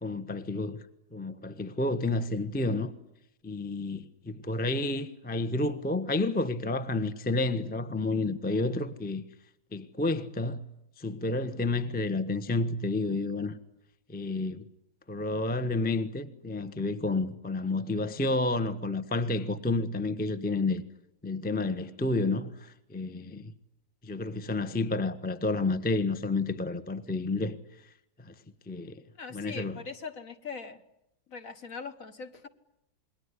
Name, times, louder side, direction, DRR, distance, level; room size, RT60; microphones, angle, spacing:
voice 1, 0.0-0.8 1.1-2.9 3.4-9.2 9.7-10.6 11.0-13.6 14.1-14.7 15.1-20.8 21.2-23.5 24.0-27.6 28.2-28.3 28.7-29.0 29.3-29.8, left 2 dB, 5° left, 0.9 m, -30 dB
voice 2, 29.2-30.8 31.3-32.5, left 4 dB, 50° left, 1.7 m, -41 dB
28.0 x 21.5 x 10.0 m
omnidirectional pair, 2.0 m